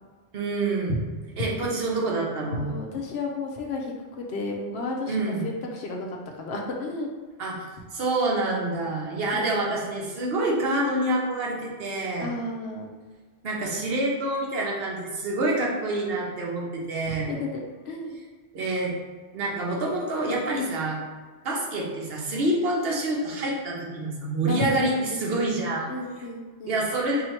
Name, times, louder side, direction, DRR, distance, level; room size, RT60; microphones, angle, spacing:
voice 1, 0.3-1.0 1.4-2.8 5.1-5.4 7.4-7.7 7.9-12.3 13.4-17.3 18.5-18.9 19.3-21.0 21.4-25.9 26.7-27.2, right 2 dB, 65° right, -2 dB, 0.9 m, -27 dB
voice 2, 2.6-6.1 6.4-7.1 9.3-9.7 12.2-12.9 17.3-18.2 24.4-25.2 25.9-26.8, left 2 dB, 70° left, 0 dB, 0.9 m, -32 dB
2.8 x 2.7 x 4.4 m, 1.4 s
omnidirectional pair, 1.1 m